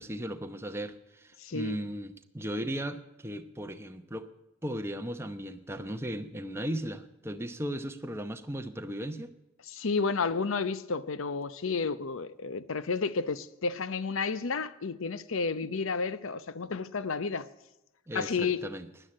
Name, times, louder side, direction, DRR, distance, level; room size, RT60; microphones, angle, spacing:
voice 1, 0.0-4.3 4.6-9.3 18.1-18.9, equal, 10° right, 0.8 m, -36 dB
voice 2, 1.4-1.8 9.7-17.5 18.1-18.6, left 4 dB, 65° left, 0.7 m, -31 dB
13.0 x 10.0 x 7.6 m
head